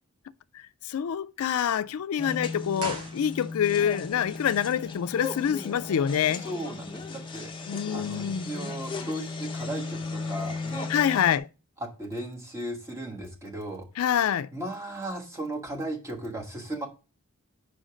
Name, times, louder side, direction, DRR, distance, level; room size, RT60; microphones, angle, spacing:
voice 1, 0.9-6.4 7.7-8.5 10.9-11.5 14.0-14.5, left 9 dB, 80° left, 0.3 m, -26 dB
sound 1, 2.2-11.4, left 3 dB, 20° left, 0.6 m, -36 dB
sound 2, 2.8-3.9 4.1-4.2, right 3 dB, 85° right, 1.3 m, -39 dB
voice 2, 6.3-10.9 11.8-13.9 14.5-16.9, right 1 dB, 15° right, 1.3 m, -36 dB
5.1 x 4.8 x 4.9 m
head